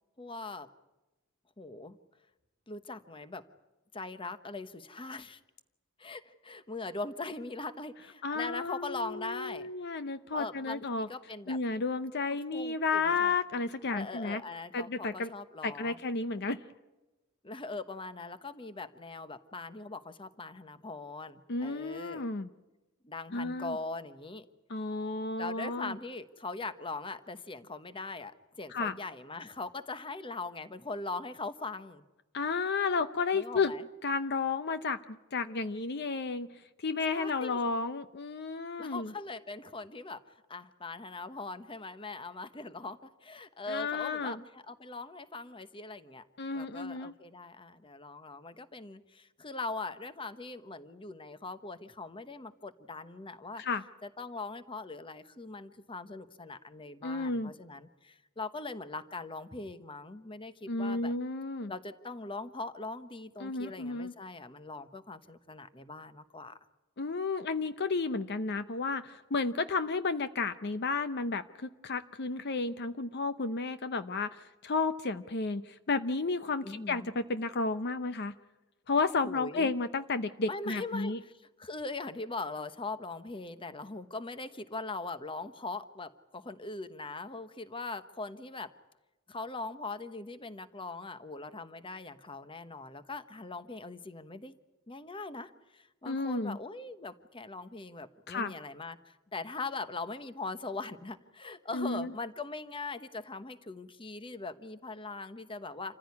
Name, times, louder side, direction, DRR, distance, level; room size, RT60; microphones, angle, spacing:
voice 1, 0.2-0.7 1.6-2.0 2.7-3.5 3.9-5.4 6.0-9.7 10.3-11.6 12.3-13.3 13.9-16.0 17.4-22.3 23.0-24.4 25.4-32.0 33.3-33.9 37.1-37.6 38.8-40.2 40.5-46.2 46.5-53.6 54.0-61.1 61.7-66.6 76.6-77.1 79.2-79.7 80.5-88.7 89.3-94.5 94.9-106.0, left 3 dB, 25° left, 12 dB, 1.1 m, -41 dB
voice 2, 8.2-11.1 11.5-14.4 14.7-15.3 15.6-16.6 21.5-22.5 23.3-23.8 24.7-26.0 28.7-28.9 32.3-33.7 34.0-35.0 35.3-36.5 36.8-39.1 43.7-44.4 46.4-47.1 53.6-53.8 57.0-57.5 60.7-61.7 63.4-64.1 67.0-78.3 78.9-81.2 96.1-96.6 98.3-98.5 101.7-102.1, left 4 dB, 50° left, 11 dB, 0.7 m, -32 dB
27.5 x 15.0 x 9.6 m, 1.1 s
head